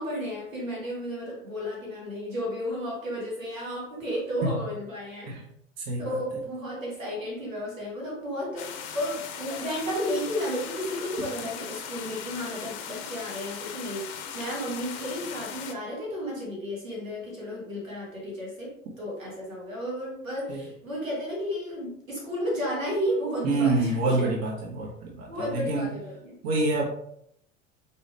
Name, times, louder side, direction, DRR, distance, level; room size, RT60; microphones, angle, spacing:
voice 1, 0.0-5.3 6.0-24.3 25.3-26.3, equal, 85° right, -3 dB, 1.7 m, -33 dB
sound 1, 8.6-15.7, left 7 dB, 45° left, 0.6 m, -38 dB
voice 2, 23.4-25.9 26.4-26.9, right 2 dB, 40° right, -3 dB, 1.3 m, -26 dB
4.2 x 3.0 x 3.3 m, 0.71 s
figure-of-eight pair, 70°, 39 cm